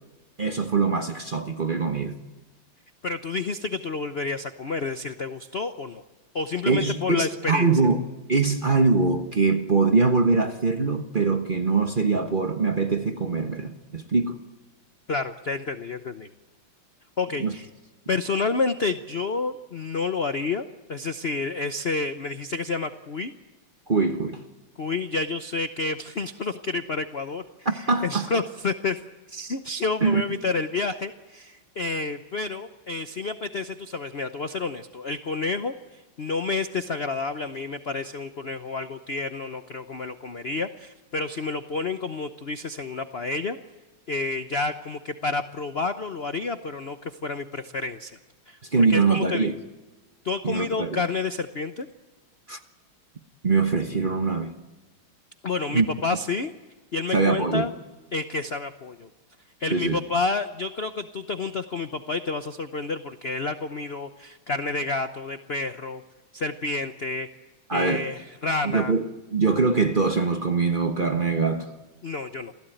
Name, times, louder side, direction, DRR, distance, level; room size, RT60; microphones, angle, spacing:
voice 1, 0.4-2.2 6.7-8.0 8.3-14.4 17.4-17.5 23.9-24.4 27.6-28.3 30.0-30.2 48.7-49.6 50.4-51.0 52.5-52.6 53.4-54.5 55.7-55.8 57.1-57.7 59.7-60.0 67.7-68.1 68.6-69.0 69.3-71.7, right 4 dB, 30° right, 1.1 m, -23 dB
voice 2, 3.0-6.0 6.3-7.7 15.1-16.3 17.2-17.7 18.1-23.3 24.8-29.0 29.3-35.7 36.2-43.6 44.1-48.1 48.5-49.6 50.2-51.9 55.4-56.5 56.9-57.7 58.1-59.1 59.6-66.0 66.3-67.3 67.7-68.9 72.0-72.5, left 3 dB, 50° left, 0.7 m, -29 dB
28.0 x 17.0 x 9.2 m
omnidirectional pair, 2.3 m